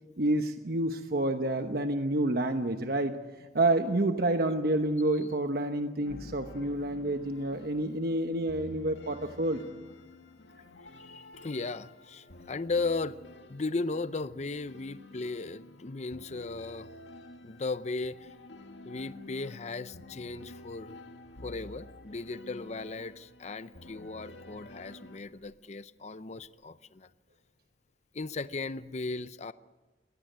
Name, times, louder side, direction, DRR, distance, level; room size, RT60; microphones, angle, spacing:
voice 1, 0.2-3.2 3.5-9.6, right 1 dB, 55° right, 6 dB, 1.1 m, -28 dB
sound 1, 6.0-25.2, left 2 dB, 90° left, 1.9 m, -50 dB
voice 2, 11.0-13.2 13.5-16.9 17.4-18.3 18.8-20.9 21.4-27.1 28.1-29.5, left 3 dB, 40° left, 14 dB, 0.6 m, -36 dB
22.5 x 17.0 x 9.3 m, 1.2 s
head